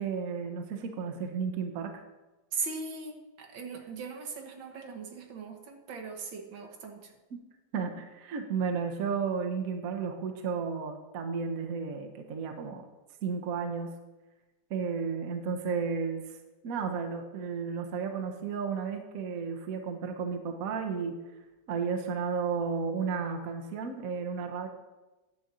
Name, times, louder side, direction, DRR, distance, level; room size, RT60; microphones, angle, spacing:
voice 1, 0.0-2.0 7.3-7.4 7.7-12.9 13.2-13.9 14.7-16.2 16.6-21.2 21.7-24.7, right 5 dB, 55° right, 4 dB, 1.1 m, -33 dB
voice 2, 2.5-7.1, right 4 dB, 75° right, 2 dB, 2.0 m, -39 dB
10.0 x 4.2 x 7.4 m, 1.1 s
omnidirectional pair, 2.1 m